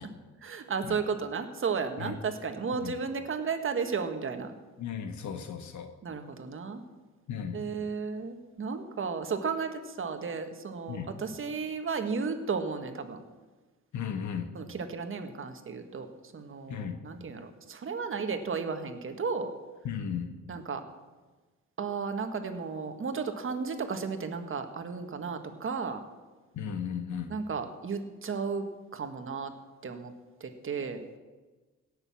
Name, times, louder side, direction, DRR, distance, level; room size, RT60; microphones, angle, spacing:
voice 1, 0.4-4.5 6.0-6.8 7.5-13.2 14.5-16.1 16.3-19.5 20.5-20.8 21.8-26.0 27.3-29.5 29.8-30.1 30.4-31.0, right 5 dB, 45° right, 7 dB, 1.7 m, -34 dB
voice 2, 4.8-5.9 7.3-7.6 10.9-11.1 13.9-14.5 16.7-17.0 19.8-20.3 26.6-27.3, left 7 dB, 70° left, 6 dB, 1.4 m, -35 dB
17.5 x 6.8 x 7.1 m, 1.3 s
cardioid pair, 90°, 30 cm